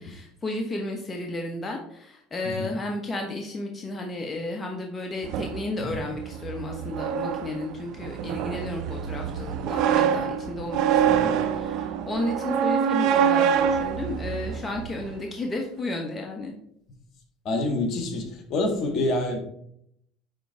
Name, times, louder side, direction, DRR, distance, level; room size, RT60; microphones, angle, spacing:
voice 1, 0.0-16.5, left 2 dB, 25° left, 1 dB, 1.2 m, -33 dB
sound 1, 5.2-15.2, right 8 dB, 65° right, 0.7 m, -26 dB
voice 2, 17.5-19.4, left 2 dB, 50° left, 4 dB, 1.8 m, -27 dB
9.9 x 3.9 x 3.5 m, 0.70 s
supercardioid pair, 90°, 0 cm